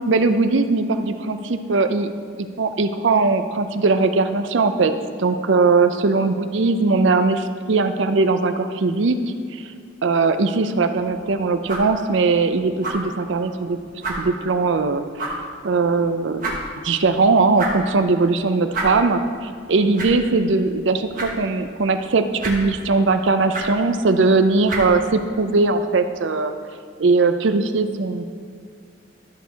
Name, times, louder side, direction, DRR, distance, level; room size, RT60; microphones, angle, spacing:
voice 1, 0.1-2.1 2.4-4.9 5.2-9.2 9.5-9.6 10.0-13.8 14.2-15.3 15.6-16.6 16.8-26.5 27.0-28.2, right 3 dB, 75° right, 9 dB, 0.5 m, -20 dB
sound 1, 10.9-25.7, right 2 dB, 45° right, 1.3 m, -34 dB
12.5 x 6.3 x 3.4 m, 2.2 s
head